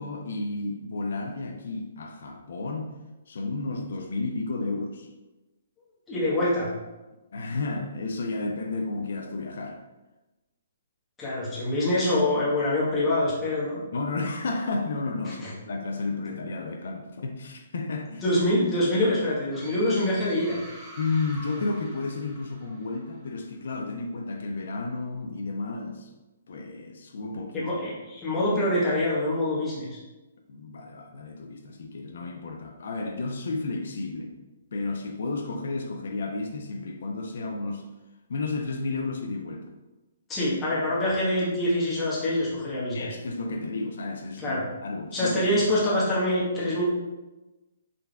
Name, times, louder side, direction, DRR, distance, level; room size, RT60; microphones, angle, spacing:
voice 1, 0.0-2.9 3.3-5.1 7.3-9.8 13.9-18.2 21.0-26.1 26.5-27.7 30.5-34.3 34.7-37.9 38.3-39.7 42.9-45.4, left 3 dB, 65° left, 4 dB, 0.5 m, -32 dB
voice 2, 6.1-6.7 11.2-13.8 15.3-15.5 18.2-20.6 27.5-30.0 40.3-43.1 44.4-44.6 45.1-46.8, left 1 dB, 15° left, -8 dB, 1.2 m, -25 dB
sound 1, 19.5-23.2, equal, 5° right, 1.0 m, -45 dB
3.8 x 3.3 x 2.3 m, 1.1 s
hypercardioid pair, 140°, 0 cm